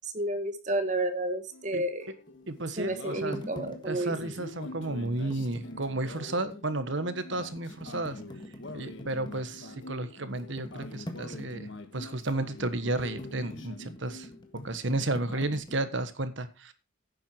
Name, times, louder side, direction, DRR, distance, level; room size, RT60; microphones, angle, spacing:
voice 1, 0.1-2.1 2.8-4.1, right 1 dB, 35° right, 8 dB, 1.8 m, -31 dB
sound 1, 1.5-14.6 14.9-15.6, left 2 dB, 65° left, 1.5 m, -45 dB
sound 2, 2.3-6.3 6.8-6.9 7.3-15.8, left 1 dB, 20° left, 1.6 m, -45 dB
voice 2, 2.5-3.4 3.8-8.2 8.7-14.3 14.6-16.7, right 2 dB, 60° right, 12 dB, 1.4 m, -32 dB
11.5 x 9.1 x 4.5 m, 0.29 s
head